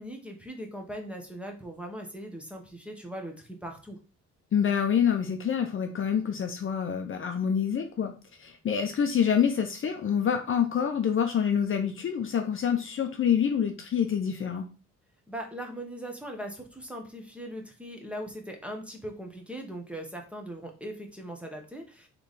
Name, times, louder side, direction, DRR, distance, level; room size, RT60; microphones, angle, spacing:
voice 1, 0.0-4.0 15.3-22.1, right 1 dB, 5° right, 2 dB, 1.1 m, -40 dB
voice 2, 4.5-8.1 8.4-14.7, left 8 dB, 45° left, 5 dB, 0.7 m, -26 dB
3.4 x 3.3 x 4.1 m, 0.34 s
cardioid pair, 90°, 30 cm